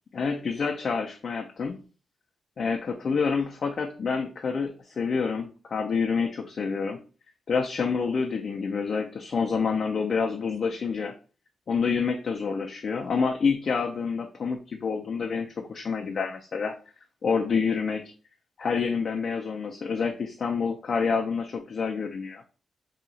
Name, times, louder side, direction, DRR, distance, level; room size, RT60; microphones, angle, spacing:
voice 1, 0.1-1.8 2.6-7.0 7.5-11.1 11.7-16.7 17.2-18.0 18.6-22.4, left 5 dB, 55° left, 1 dB, 0.5 m, -28 dB
2.8 x 2.4 x 3.9 m, 0.36 s
cardioid pair, 85°, 0 cm